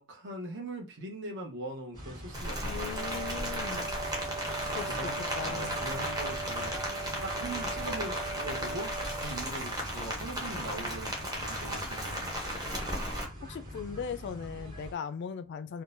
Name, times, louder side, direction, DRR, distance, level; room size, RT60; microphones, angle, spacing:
voice 1, 0.0-3.4 4.5-5.2 5.4-6.8 7.2-12.6, right 1 dB, 60° right, 1.0 m, -41 dB
sound 1, 1.9-14.9, equal, 40° right, 1.8 m, -44 dB
Rain, 2.3-13.2, equal, 20° right, 0.8 m, -35 dB
voice 2, 2.6-3.9 4.7-5.8 13.4-15.8, left 6 dB, 55° left, 0.3 m, -39 dB
Wind instrument woodwind instrument, 2.9-9.7, right 4 dB, 80° right, 1.0 m, -40 dB
3.7 x 2.2 x 2.5 m
head